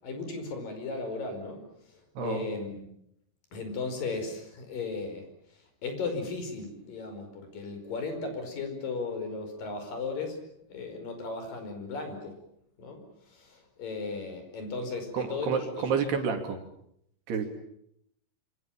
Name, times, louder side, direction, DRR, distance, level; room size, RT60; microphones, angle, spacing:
voice 1, 0.0-2.8 3.5-5.3 5.5-10.4 10.7-12.4 12.8-15.9, left 3 dB, 50° left, 6 dB, 6.6 m, -36 dB
voice 2, 15.1-16.6 17.3-17.5, right 6 dB, 65° right, 5 dB, 4.8 m, -29 dB
27.0 x 25.0 x 7.4 m, 0.73 s
omnidirectional pair, 5.2 m